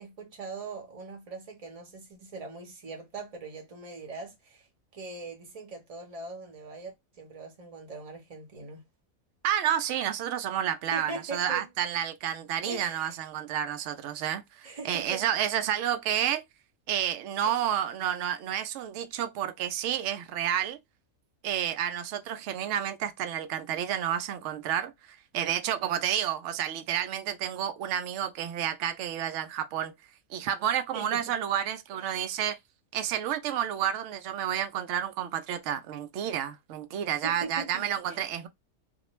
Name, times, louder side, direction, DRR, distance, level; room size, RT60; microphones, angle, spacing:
voice 1, 0.0-4.7 4.9-8.8 10.9-11.7 12.6-13.1 14.6-15.3 17.4-17.6 30.9-31.3 31.9-32.2 37.2-38.3, right 3 dB, 30° right, 0.8 m, -41 dB
voice 2, 9.4-16.4 16.9-20.8 21.4-24.9 25.3-29.9 30.3-32.6 32.9-38.5, right 10 dB, 70° right, 0.8 m, -30 dB
2.4 x 2.2 x 3.0 m
omnidirectional pair, 1.4 m